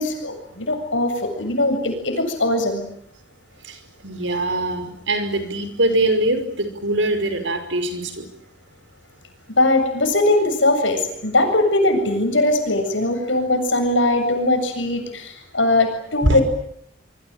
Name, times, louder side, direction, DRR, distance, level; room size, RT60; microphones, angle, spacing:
voice 1, 0.0-2.9 9.6-16.4, left 2 dB, 85° left, 7 dB, 7.5 m, -20 dB
voice 2, 4.0-8.3 16.2-16.4, right 1 dB, 80° right, 9 dB, 5.5 m, -22 dB
26.5 x 24.0 x 9.0 m, 0.71 s
head